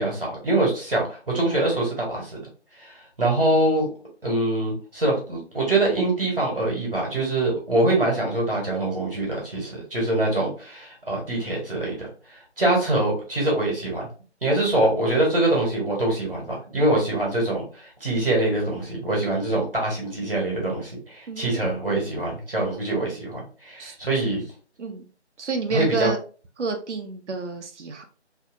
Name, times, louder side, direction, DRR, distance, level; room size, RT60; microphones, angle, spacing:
voice 1, 0.0-2.4 2.7-3.9 4.2-14.1 14.4-24.4 25.7-26.1, right 2 dB, 55° right, -2 dB, 1.2 m, -24 dB
voice 2, 21.3-21.6 23.8-24.2 24.8-25.0 25.4-26.2 26.6-28.0, right 4 dB, 80° right, 5 dB, 0.6 m, -29 dB
2.7 x 2.3 x 2.4 m, 0.38 s
figure-of-eight pair, 170°, 35 cm